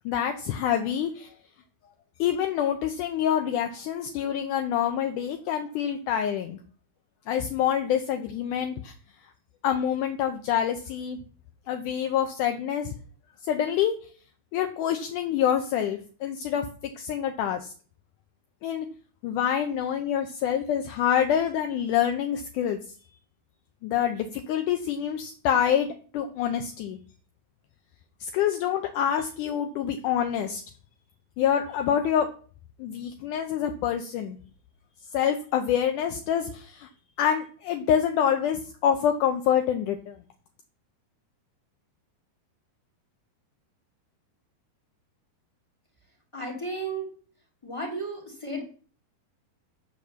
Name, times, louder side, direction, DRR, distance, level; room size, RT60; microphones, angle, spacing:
voice 1, 0.1-1.4 2.2-6.6 7.3-8.9 9.6-11.2 11.7-12.9 13.4-13.9 14.5-16.7 17.0-17.7 18.6-18.9 19.2-22.8 23.8-27.0 28.2-30.6 31.4-32.3 32.8-34.4 35.1-36.9 37.2-40.2, left 9 dB, 80° left, 6 dB, 1.8 m, -26 dB
voice 2, 46.3-47.1 47.6-48.6, right 2 dB, 10° left, 1 dB, 1.4 m, -33 dB
7.6 x 6.6 x 6.7 m, 0.42 s
omnidirectional pair, 4.5 m